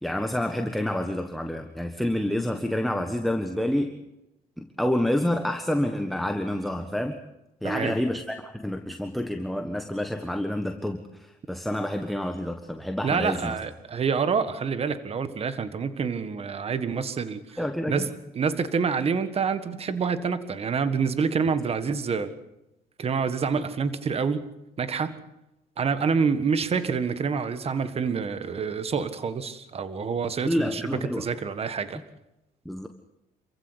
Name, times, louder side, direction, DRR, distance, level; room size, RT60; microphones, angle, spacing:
voice 1, 0.0-3.9 4.6-7.2 7.6-13.6 17.6-18.1 30.4-31.3 32.6-32.9, left 1 dB, ahead, 5 dB, 1.4 m, -28 dB
voice 2, 7.6-7.9 13.0-17.4 17.9-18.1 18.3-22.3 23.0-24.4 24.8-25.2 25.8-32.0, right 5 dB, 35° right, 11 dB, 1.6 m, -27 dB
27.5 x 15.0 x 8.2 m, 0.93 s
cardioid pair, 110°, 17 cm